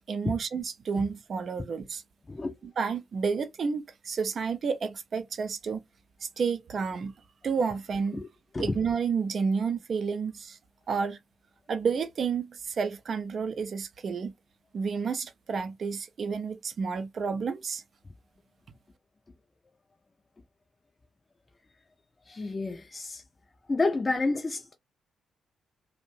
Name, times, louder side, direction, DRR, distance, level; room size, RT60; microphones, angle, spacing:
voice 1, 0.1-2.0 2.8-5.8 6.2-7.1 7.4-8.2 8.6-10.6 10.9-11.2 11.7-14.3 14.7-17.8, right 5 dB, 45° right, 0.4 m, -30 dB
voice 2, 22.3-23.2 23.7-24.7, left 3 dB, 25° left, 0.5 m, -29 dB
2.5 x 2.1 x 2.9 m
figure-of-eight pair, 40°, 0 cm